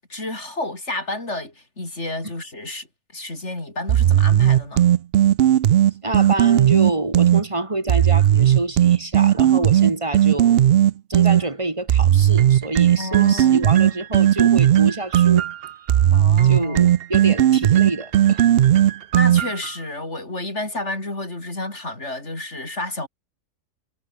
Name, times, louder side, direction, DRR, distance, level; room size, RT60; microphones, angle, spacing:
voice 1, 0.1-2.9 3.1-4.8 13.0-13.6 16.1-17.0 19.1-23.1, left 2 dB, 60° left, 5.7 m, -30 dB
sound 1, 3.9-7.4 7.9-11.4 11.9-19.7, right 11 dB, 60° right, 0.7 m, -16 dB
voice 2, 6.0-10.6 11.1-15.5 16.5-18.5, right 2 dB, 25° right, 3.2 m, -27 dB
omnidirectional pair, 1.4 m